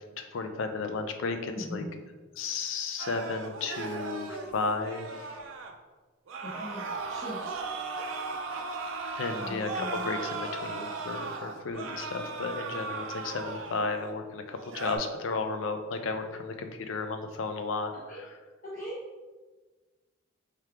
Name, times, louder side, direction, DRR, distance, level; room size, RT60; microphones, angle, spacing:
voice 1, 0.2-1.8 2.4-5.4 9.2-18.4, left 4 dB, 70° left, 7 dB, 0.4 m, -34 dB
voice 2, 1.5-1.9 6.5-7.4 9.4-10.1 18.1-18.2 18.7-18.9, equal, 45° left, -8 dB, 0.8 m, -40 dB
sound 1, 3.0-5.7 6.3-14.1 14.5-15.0, right 3 dB, 75° right, 0.4 m, -37 dB
3.5 x 3.2 x 3.4 m, 1.3 s
head